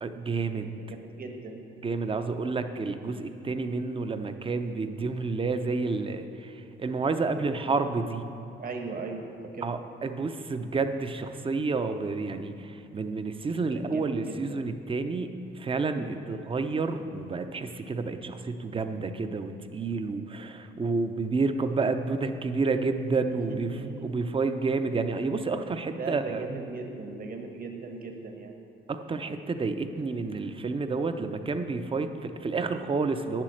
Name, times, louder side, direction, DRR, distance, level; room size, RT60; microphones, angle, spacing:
voice 1, 0.0-0.7 1.8-8.2 9.6-15.3 15.5-23.7 24.0-26.4 28.9-33.4, right 4 dB, 25° right, 8 dB, 0.6 m, -30 dB
voice 2, 0.8-1.6 2.3-2.6 7.3-7.7 8.6-9.7 13.9-14.6 16.0-16.2 23.3-24.1 26.0-28.6 32.0-32.2, right 3 dB, 45° right, 4 dB, 1.3 m, -38 dB
8.9 x 7.5 x 6.4 m, 2.6 s
cardioid pair, 90°, 20 cm